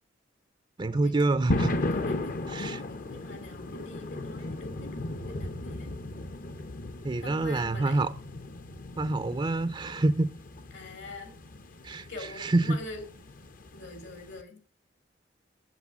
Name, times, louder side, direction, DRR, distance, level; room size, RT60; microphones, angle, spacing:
voice 1, 0.8-1.7 2.5-2.8 7.0-8.1 9.0-10.3 11.8-12.1 12.4-12.8, right 2 dB, 25° right, 0.5 m, -26 dB
sound 1, 1.5-14.4, left 2 dB, 50° left, 0.8 m, -36 dB
voice 2, 1.9-5.9 7.2-8.0 10.7-11.4 12.1-13.0 13.7-14.6, left 2 dB, 75° left, 2.9 m, -44 dB
8.1 x 7.7 x 8.3 m
head